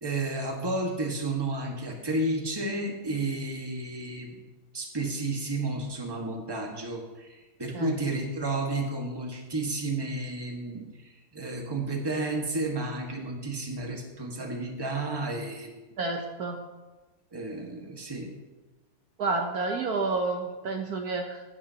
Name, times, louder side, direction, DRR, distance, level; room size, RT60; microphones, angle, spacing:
voice 1, 0.0-4.3 4.7-15.7 17.3-18.3, right 2 dB, 15° right, 0 dB, 1.5 m, -32 dB
voice 2, 16.0-16.7 19.2-21.4, right 3 dB, 65° right, 3 dB, 1.3 m, -30 dB
16.5 x 9.5 x 2.9 m, 1.2 s
omnidirectional pair, 1.9 m